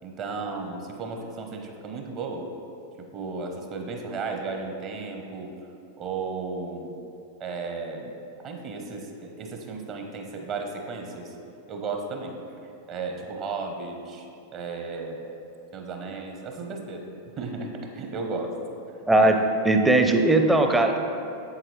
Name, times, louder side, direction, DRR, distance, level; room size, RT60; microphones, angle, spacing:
voice 1, 0.0-2.5 3.0-5.5 6.0-6.9 7.4-8.1 8.4-11.3 11.7-12.4 12.9-15.2 15.7-17.1 17.4-18.6 19.1-19.3, right 4 dB, 35° right, 3 dB, 0.9 m, -34 dB
voice 2, 19.6-21.0, right 2 dB, 10° right, 4 dB, 0.6 m, -19 dB
7.6 x 7.6 x 3.2 m, 2.6 s
figure-of-eight pair, 90°, 0 cm